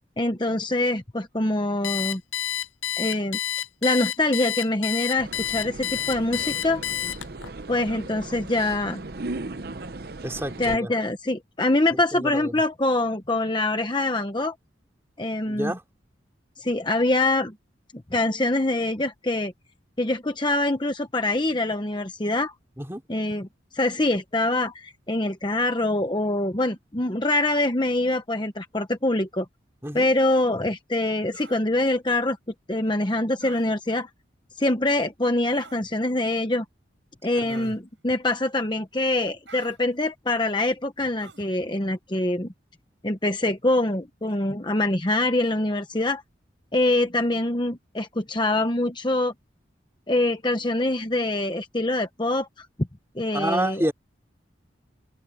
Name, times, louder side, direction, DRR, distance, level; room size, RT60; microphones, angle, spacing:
voice 1, 0.2-2.2 3.0-3.4 3.8-6.8 7.7-9.0 10.6-14.5 15.2-15.7 16.6-17.5 18.1-19.5 20.0-22.5 23.1-23.4 23.7-29.5 29.9-32.4 32.7-34.1 34.6-36.6 37.2-42.5 43.0-46.2 46.7-49.3 50.1-52.7 53.1-53.8, left 2 dB, 25° left, 1.0 m, -24 dB
Alarm, 1.8-7.5, left 11 dB, 85° left, 0.6 m, -29 dB
sound 1, 5.2-10.8, right 2 dB, 50° right, 0.8 m, -37 dB
voice 2, 10.2-10.9 11.9-12.6 15.5-15.8 22.8-23.0 29.8-30.1 37.4-37.8 53.3-53.9, right 1 dB, 15° right, 3.0 m, -29 dB
sound 2, 31.3-31.6 33.4-33.7 35.5-35.8 37.5-37.8 39.5-39.8 41.2-41.5, right 4 dB, 70° right, 8.0 m, -46 dB
open air
head